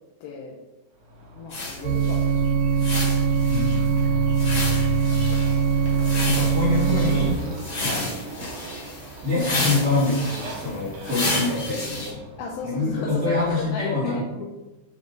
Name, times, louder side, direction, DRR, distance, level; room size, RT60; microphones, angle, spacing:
voice 1, 0.2-0.6 1.4-2.8 7.8-8.1 12.4-14.3, left 4 dB, 85° left, -2 dB, 2.6 m, -35 dB
Motorcycle, 1.0-13.7, left 1 dB, 65° right, 2.5 m, -38 dB
sound 1, 1.5-12.1, left 2 dB, 40° left, 2.3 m, -32 dB
sound 2, 1.8-7.3, right 5 dB, 90° right, 2.5 m, -22 dB
voice 2, 3.5-3.9 6.2-7.4 7.8-8.1 9.2-12.2 12.6-14.4, left 3 dB, 45° right, -8 dB, 1.9 m, -25 dB
7.3 x 3.8 x 3.9 m, 1.1 s
omnidirectional pair, 4.2 m